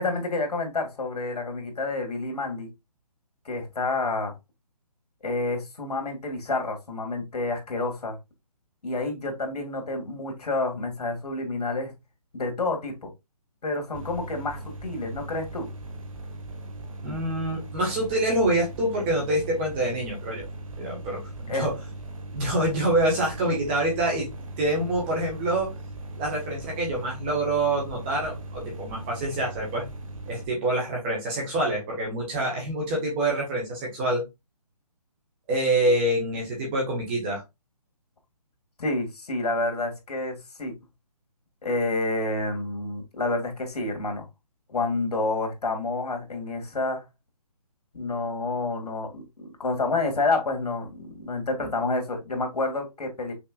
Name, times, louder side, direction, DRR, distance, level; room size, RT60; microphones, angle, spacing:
voice 1, 0.0-2.7 3.5-4.3 5.2-8.2 8.8-11.9 12.3-13.1 13.6-15.7 21.5-21.7 38.8-40.7 41.6-44.3 44.7-47.0 47.9-53.3, left 2 dB, 75° left, 2.1 m, -29 dB
sound 1, 13.9-30.5, right 1 dB, 55° right, 1.4 m, -39 dB
voice 2, 17.0-20.4 20.8-21.7 22.3-24.3 24.6-25.7 26.2-29.8 30.3-34.2 35.5-37.4, right 1 dB, 15° right, 1.5 m, -26 dB
5.9 x 3.5 x 2.4 m
hypercardioid pair, 170°, 20 cm